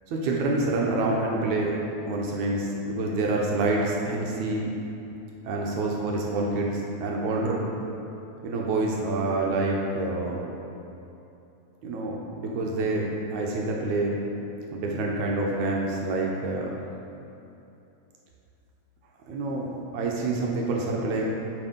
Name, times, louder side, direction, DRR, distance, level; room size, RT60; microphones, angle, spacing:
voice 1, 0.1-1.8 2.1-4.7 5.5-7.7 8.4-10.4 11.8-14.2 14.7-16.8 19.3-21.2, right 2 dB, 80° right, -2 dB, 2.1 m, -27 dB
8.6 x 4.4 x 5.1 m, 2.8 s
omnidirectional pair, 3.5 m